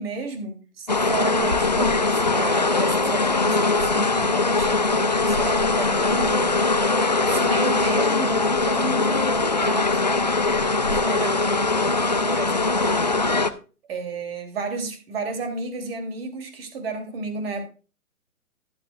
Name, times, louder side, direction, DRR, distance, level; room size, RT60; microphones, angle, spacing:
voice 1, 0.0-6.6 7.2-10.0 10.8-11.3 12.1-13.2 13.9-17.7, right 3 dB, 40° right, 5 dB, 3.0 m, -32 dB
sound 1, 0.9-13.5, left 3 dB, 30° left, 0.4 m, -21 dB
12.0 x 11.5 x 2.4 m, 0.34 s
figure-of-eight pair, 145°, 45 cm